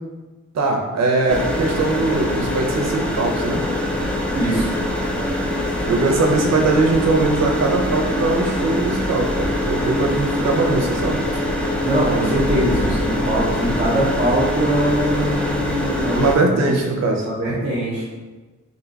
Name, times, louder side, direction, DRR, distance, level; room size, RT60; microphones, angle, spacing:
voice 1, 0.5-3.7 5.9-11.2 16.2-17.3, right 3 dB, 60° right, 2 dB, 0.6 m, -20 dB
sound 1, 1.3-16.4, left 1 dB, 5° left, 0.4 m, -23 dB
voice 2, 4.3-4.7 11.8-16.7 17.2-18.1, right 1 dB, 30° right, -7 dB, 0.8 m, -22 dB
2.7 x 2.2 x 3.9 m, 1.2 s
wide cardioid pair, 115°, 30 cm